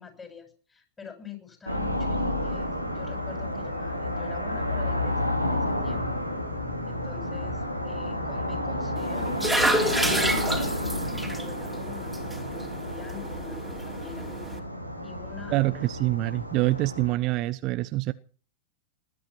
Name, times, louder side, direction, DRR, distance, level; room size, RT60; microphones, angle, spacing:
voice 1, 0.0-6.1 6.9-14.3 15.0-15.6, left 7 dB, 15° left, 6.8 m, -45 dB
sound 1, 1.7-17.1, left 1 dB, 90° left, 2.9 m, -31 dB
sound 2, 9.0-14.6, right 1 dB, ahead, 3.4 m, -30 dB
voice 2, 15.5-18.1, right 19 dB, 40° right, 0.7 m, -25 dB
20.0 x 12.0 x 6.0 m
figure-of-eight pair, 90°, 0 cm